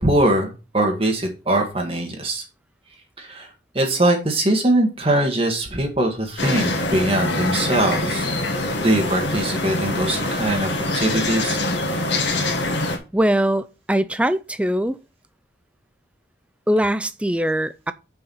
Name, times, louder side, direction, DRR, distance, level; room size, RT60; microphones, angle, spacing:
voice 1, 0.0-2.4 3.2-3.5 3.7-8.3 8.8-11.6, right 1 dB, 30° right, 1.8 m, -21 dB
sound 1, 6.4-13.0, left 2 dB, 85° left, 2.1 m, -24 dB
voice 2, 13.1-15.0 16.7-17.9, right 1 dB, 5° right, 0.4 m, -21 dB
6.6 x 5.7 x 5.6 m
head